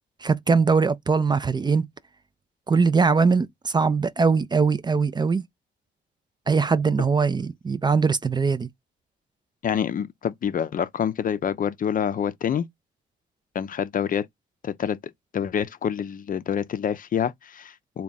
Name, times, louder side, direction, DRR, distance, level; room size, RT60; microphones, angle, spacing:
voice 1, 0.2-1.9 2.7-5.4 6.5-8.7, right 5 dB, 20° right, 0.4 m, -21 dB
voice 2, 9.6-12.7 13.5-14.3 14.6-15.0 15.3-18.0, left 8 dB, 45° left, 0.5 m, -27 dB
3.5 x 2.3 x 4.0 m
cardioid pair, 90°, 20 cm